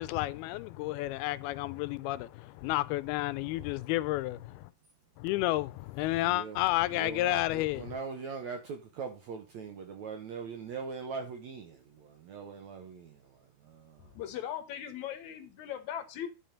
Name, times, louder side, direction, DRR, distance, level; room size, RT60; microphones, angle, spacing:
voice 1, 0.0-4.7 5.2-7.9, left 17 dB, 85° left, 2.5 m, -31 dB
voice 2, 6.2-6.6 6.9-14.1, right 5 dB, 70° right, 1.8 m, -41 dB
voice 3, 14.1-16.3, left 10 dB, 70° left, 1.9 m, -39 dB
10.5 x 4.9 x 5.1 m
omnidirectional pair, 4.4 m